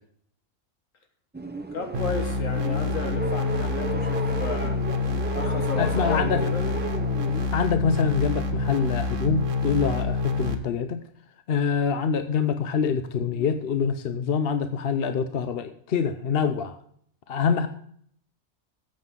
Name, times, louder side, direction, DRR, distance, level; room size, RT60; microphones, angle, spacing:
sound 1, 1.3-7.5, right 2 dB, 15° right, 0.4 m, -34 dB
voice 1, 1.7-4.8 5.3-6.7, left 4 dB, 80° left, 1.8 m, -33 dB
sound 2, 1.9-10.6, left 4 dB, 75° right, 1.6 m, -27 dB
voice 2, 5.8-6.4 7.5-11.0 11.5-16.8 17.3-17.7, left 6 dB, 55° left, 0.8 m, -25 dB
14.0 x 7.6 x 3.7 m
omnidirectional pair, 1.3 m